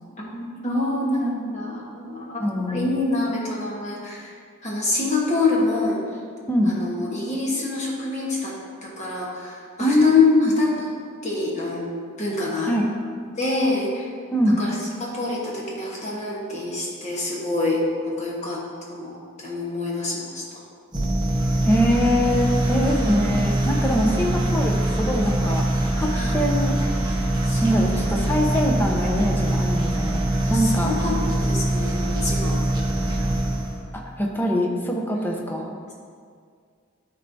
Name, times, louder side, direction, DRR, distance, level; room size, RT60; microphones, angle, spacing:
voice 1, 0.2-4.3 4.6-6.0 6.6-8.5 8.8-10.2 10.6-10.7 11.2-11.8 12.2-12.7 13.4-14.1 14.6-14.7 15.0-17.8 18.1-18.6 18.9-20.6 23.9-24.2 26.1-26.4 27.5-27.8 30.4-32.6 35.1-35.2, left 3 dB, 35° left, -4 dB, 1.2 m, -26 dB
voice 2, 2.4-3.0 6.5-6.7 9.8-10.5 12.7-12.9 14.3-14.6 21.7-25.7 25.9-26.8 27.6-31.0 33.9-35.8, equal, 10° left, 0 dB, 0.6 m, -23 dB
sound 1, 20.9-33.9, right 1 dB, 20° right, 0.8 m, -23 dB
13.0 x 4.4 x 2.7 m, 2.1 s
head